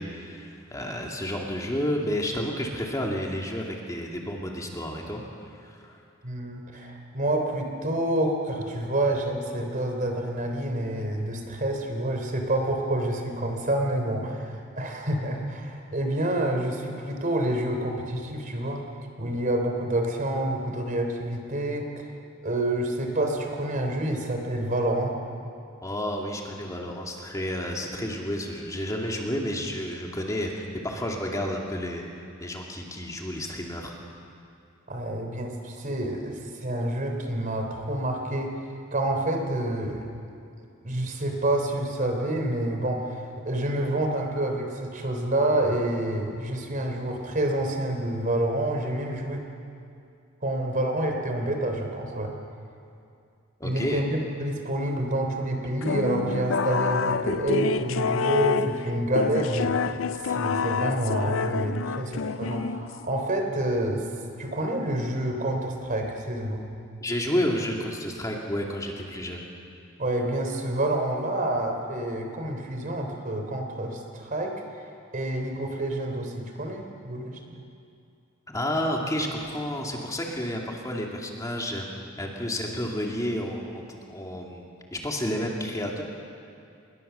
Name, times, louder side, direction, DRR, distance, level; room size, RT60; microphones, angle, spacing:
voice 1, 0.0-5.2 5.5-6.0 25.8-32.0 32.4-33.9 53.6-54.0 67.0-69.4 78.5-81.9 82.2-84.7 84.9-86.0, equal, 15° left, -1 dB, 2.5 m, -31 dB
voice 2, 6.2-18.8 19.2-22.1 22.4-25.1 34.9-38.5 38.9-40.1 40.8-49.4 50.4-52.3 53.6-64.0 64.4-66.6 70.0-74.5 75.1-77.6, right 1 dB, 40° right, 3 dB, 3.4 m, -28 dB
sound 1, 55.8-63.2, left 5 dB, 75° left, 0.5 m, -28 dB
27.0 x 21.5 x 6.9 m, 2.5 s
head